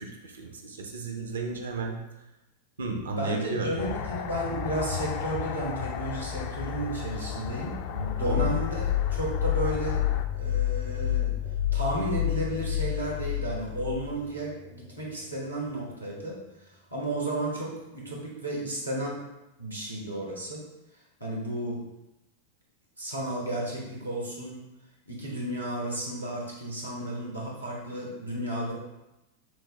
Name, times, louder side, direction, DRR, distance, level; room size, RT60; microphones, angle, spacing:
voice 1, 0.0-2.0 2.8-3.7 8.2-8.6, right 3 dB, 70° right, 3 dB, 0.6 m, -33 dB
voice 2, 3.2-8.8 9.1-10.1 10.4-11.3 11.7-19.2 19.6-20.6 21.2-21.9 23.0-24.6 25.1-28.7, right 1 dB, 85° right, -2 dB, 1.1 m, -33 dB
sound 1, 3.8-10.3, left 7 dB, 45° left, 0.3 m, -35 dB
sound 2, 8.0-15.2, left 12 dB, 80° left, 1.1 m, -29 dB
6.1 x 2.2 x 3.2 m, 0.94 s
figure-of-eight pair, 90°, 0 cm